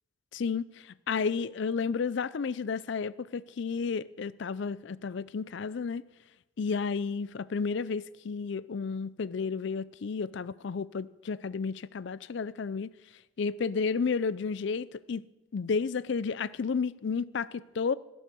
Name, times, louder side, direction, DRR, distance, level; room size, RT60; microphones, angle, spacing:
voice 1, 0.3-6.0 6.6-12.9 13.4-15.2 15.5-17.9, left 5 dB, 60° left, 0.4 m, -32 dB
16.0 x 6.2 x 6.9 m
head